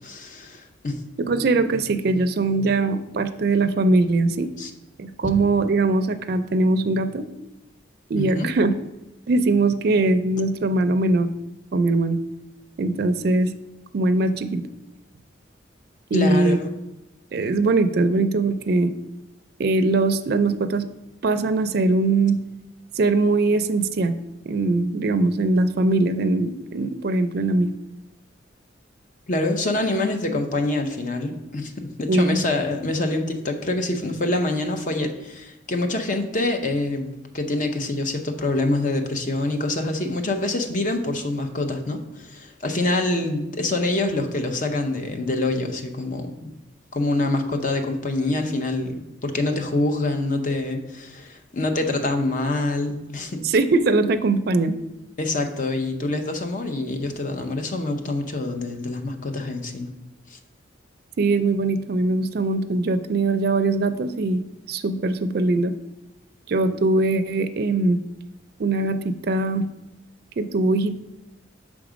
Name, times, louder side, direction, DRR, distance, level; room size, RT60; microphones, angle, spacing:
voice 1, 0.0-1.0 4.6-4.7 8.2-8.5 16.1-16.7 29.3-46.5 46.9-53.4 55.2-59.9 60.3-60.4, left 2 dB, 45° left, 5 dB, 0.7 m, -26 dB
voice 2, 1.2-4.5 5.0-7.3 8.1-8.7 9.3-11.3 11.7-12.2 12.8-13.5 13.9-14.7 16.1-16.6 17.3-18.9 19.6-20.8 21.2-22.4 23.0-24.2 24.5-27.7 32.1-32.4 53.4-54.7 61.2-64.4 64.7-65.7 66.5-68.0 68.6-69.7 70.4-71.0, right 2 dB, 55° right, 9 dB, 0.4 m, -21 dB
6.0 x 3.6 x 5.0 m, 0.97 s
head